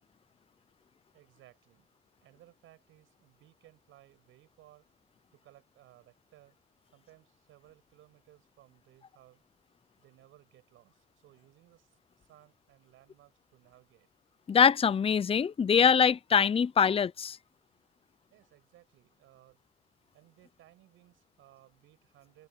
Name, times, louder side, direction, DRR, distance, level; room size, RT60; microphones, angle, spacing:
voice 1, 1.1-1.9 2.2-4.9 5.3-6.6 6.9-9.4 10.0-14.1 18.3-19.6 20.1-22.5, right 14 dB, 90° right, 6.4 m, -61 dB
voice 2, 14.5-17.4, left 7 dB, 30° left, 0.5 m, -23 dB
cardioid pair, 90°, 20 cm